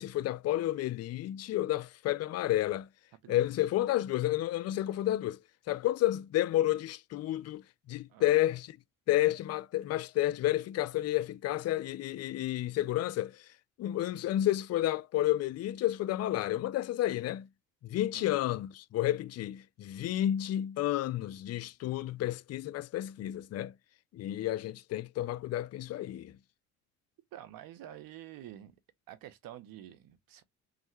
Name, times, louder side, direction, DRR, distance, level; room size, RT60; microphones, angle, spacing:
voice 1, 0.0-2.9 3.3-5.4 5.7-8.8 9.1-13.5 13.8-17.5 17.8-23.7 24.1-26.4, left 14 dB, 45° left, 0.4 m, -31 dB
voice 2, 27.3-28.7 29.1-30.4, right 12 dB, 65° right, 0.8 m, -48 dB
3.2 x 2.4 x 3.0 m
hypercardioid pair, 60°, 37 cm